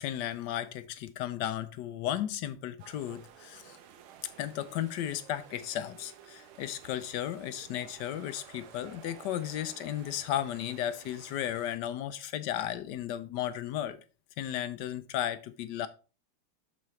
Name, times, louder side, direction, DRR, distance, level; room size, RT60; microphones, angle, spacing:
voice 1, 0.0-3.8 4.4-14.0 14.4-15.9, left 11 dB, 75° left, 1.0 m, -34 dB
sound 1, 2.8-11.8, right 9 dB, 85° right, 1.7 m, -53 dB
12.5 x 4.1 x 3.1 m
omnidirectional pair, 2.3 m